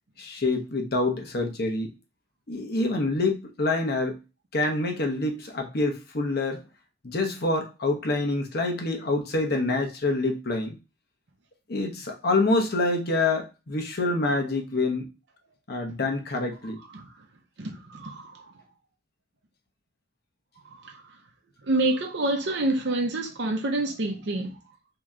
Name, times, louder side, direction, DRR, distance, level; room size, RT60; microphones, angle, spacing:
voice 1, 0.2-1.9 2.5-4.2 4.5-6.6 7.0-10.8 11.7-15.1 15.7-16.8, left 2 dB, 55° left, 0.9 m, -26 dB
voice 2, 16.9-17.2 17.6-18.5 20.6-21.2 21.6-24.6, right 2 dB, 60° right, 0.7 m, -28 dB
3.3 x 2.9 x 3.6 m
head